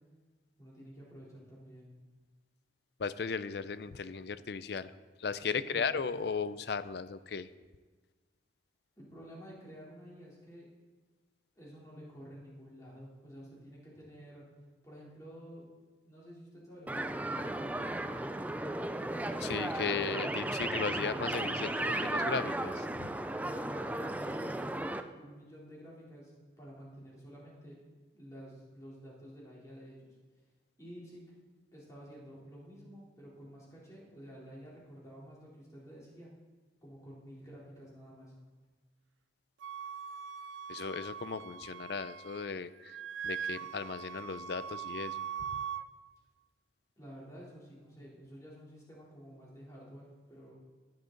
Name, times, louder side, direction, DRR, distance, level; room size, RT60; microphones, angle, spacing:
voice 1, 0.6-1.9 5.7-6.0 9.0-10.7 11.5-14.4 14.8-15.6 16.0-18.2 23.4-26.3 26.6-27.8 28.1-30.1 30.8-31.2 31.7-36.3 36.8-38.3 47.0-50.5, equal, 15° left, -6 dB, 3.5 m, -51 dB
voice 2, 3.0-4.9 5.2-7.5 19.4-23.1 40.7-43.0 43.2-45.2, left 5 dB, 60° left, 15 dB, 0.5 m, -36 dB
sound 1, 16.9-25.0, right 1 dB, 10° right, 0.4 m, -35 dB
Wind instrument woodwind instrument, 39.6-42.5 42.8-45.8, right 7 dB, 85° right, 0.4 m, -41 dB
16.0 x 10.5 x 3.9 m, 1.3 s
head